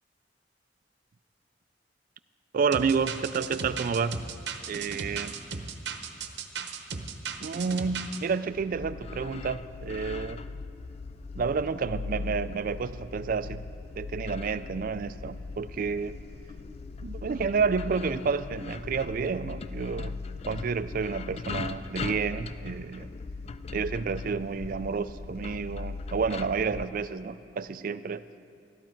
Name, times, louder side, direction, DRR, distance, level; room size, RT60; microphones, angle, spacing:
voice 1, 2.5-4.2 4.7-5.3 7.4-10.4 11.4-13.6 14.0-16.2 17.0-20.1 20.5-23.1 23.7-28.2, right 5 dB, 50° right, 14 dB, 0.4 m, -30 dB
sound 1, 2.7-8.2, right 5 dB, 65° right, 0.8 m, -36 dB
sound 2, 8.5-26.9, left 4 dB, 35° left, 0.3 m, -39 dB
13.0 x 13.0 x 4.5 m, 2.5 s
head